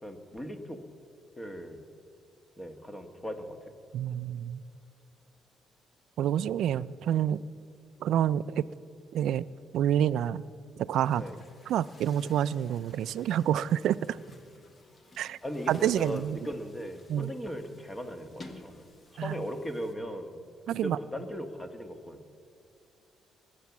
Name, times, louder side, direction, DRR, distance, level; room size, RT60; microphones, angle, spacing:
voice 1, 0.0-0.8 1.4-1.8 2.6-3.7 11.2-11.4 15.4-18.8 19.1-22.2, equal, 15° left, 7 dB, 1.4 m, -38 dB
voice 2, 3.9-4.6 6.2-7.4 8.0-8.7 9.1-9.5 9.7-10.4 10.8-11.2 11.7-14.2 15.2-15.4 15.7-16.4 17.1-17.3 19.2-19.4 20.7-21.0, right 10 dB, 75° right, 17 dB, 0.3 m, -28 dB
Chatter / Gurgling / Tap, 10.8-19.9, left 1 dB, 35° left, 1.5 m, -53 dB
20.5 x 8.4 x 7.2 m, 2.5 s
cardioid pair, 90°, 0 cm